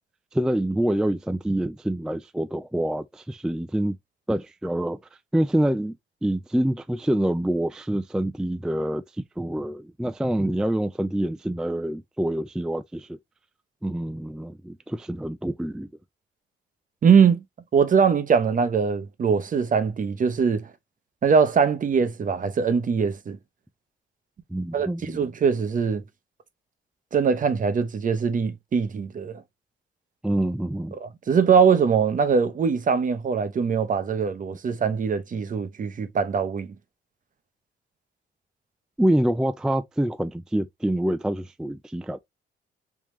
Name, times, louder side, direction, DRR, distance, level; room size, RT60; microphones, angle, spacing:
voice 1, 0.3-4.0 4.3-5.0 5.3-6.0 6.2-9.0 9.4-13.2 13.8-15.9 24.5-25.3 30.2-30.9 39.0-42.2, right 1 dB, 5° right, 0.3 m, -26 dB
voice 2, 17.0-17.4 17.7-20.7 21.2-23.4 24.7-26.0 27.1-29.4 31.0-36.7, right 6 dB, 40° right, 0.8 m, -22 dB
3.5 x 3.0 x 3.0 m
cardioid pair, 90°, 20 cm